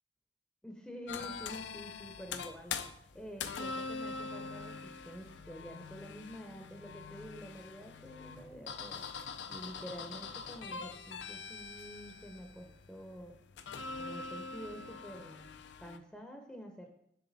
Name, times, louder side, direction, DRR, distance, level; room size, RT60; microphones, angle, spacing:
voice 1, 0.6-9.2 9.5-13.4 14.0-15.5 15.8-16.9, equal, 5° left, 2 dB, 0.6 m, -48 dB
sound 1, 1.1-16.0, left 5 dB, 85° left, 0.5 m, -44 dB
7.2 x 6.5 x 4.0 m, 0.73 s
head